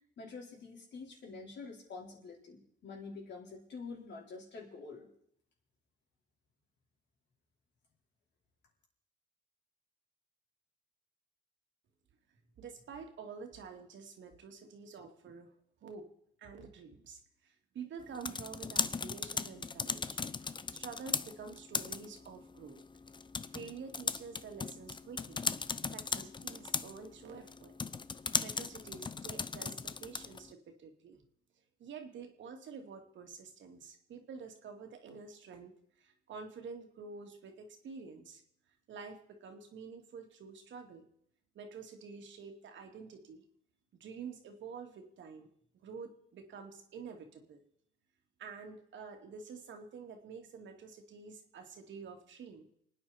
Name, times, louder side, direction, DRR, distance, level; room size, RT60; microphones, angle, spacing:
voice 1, 0.2-5.1, left 4 dB, 65° left, -2 dB, 4.6 m, -47 dB
voice 2, 12.6-15.5 15.8-16.0 16.4-22.8 23.5-25.4 25.9-27.7 28.4-31.2 31.8-38.4 38.9-41.1 41.5-43.4 44.0-45.5 45.8-47.6 48.4-52.7, right 5 dB, 70° right, 4 dB, 2.5 m, -48 dB
sound 1, 18.0-30.5, left 4 dB, 25° left, 0.6 m, -38 dB
28.5 x 9.6 x 4.4 m, 0.71 s
cardioid pair, 90°, 20 cm